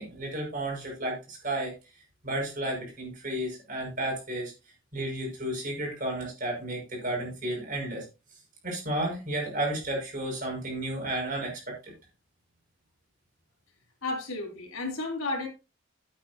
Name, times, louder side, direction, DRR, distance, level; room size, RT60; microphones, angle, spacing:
voice 1, 0.0-1.7 2.2-4.5 4.9-8.1 8.6-11.9, right 1 dB, 40° right, -1 dB, 5.9 m, -32 dB
voice 2, 14.0-15.5, left 2 dB, 85° left, 1 dB, 3.4 m, -32 dB
11.5 x 9.1 x 2.8 m, 0.28 s
head